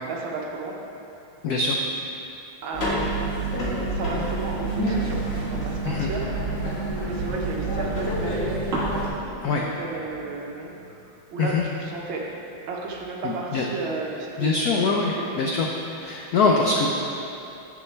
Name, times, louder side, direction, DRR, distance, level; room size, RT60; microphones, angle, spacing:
voice 1, 0.0-0.8 2.6-3.1 3.9-6.3 7.1-8.6 9.4-12.3 12.7-14.5 14.8-15.3 16.4-16.8, right 4 dB, 70° right, -2 dB, 1.6 m, -34 dB
voice 2, 1.4-1.8 5.8-6.1 9.4-9.6 11.4-11.6 13.2-13.7 14.4-15.7 15.9-16.9, left 4 dB, 85° left, -1 dB, 0.8 m, -23 dB
sound 1, 2.7-9.1, right 2 dB, 35° left, 1.5 m, -27 dB
sound 2, 8.7-14.2, right 1 dB, 40° right, 1.7 m, -39 dB
8.0 x 7.1 x 3.3 m, 2.8 s
omnidirectional pair, 2.3 m